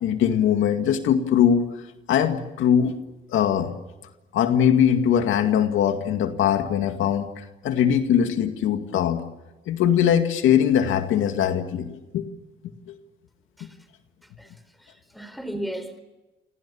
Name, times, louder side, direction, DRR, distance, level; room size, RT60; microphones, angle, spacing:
voice 1, 0.0-1.7 2.1-3.0 3.3-3.8 4.3-9.2 9.7-12.3 12.9-13.0 13.6-13.7, left 9 dB, 85° left, 7 dB, 2.1 m, -21 dB
voice 2, 14.8-16.0, right 1 dB, ahead, 11 dB, 4.5 m, -35 dB
29.0 x 25.5 x 7.1 m, 1.1 s
cardioid pair, 90°, 20 cm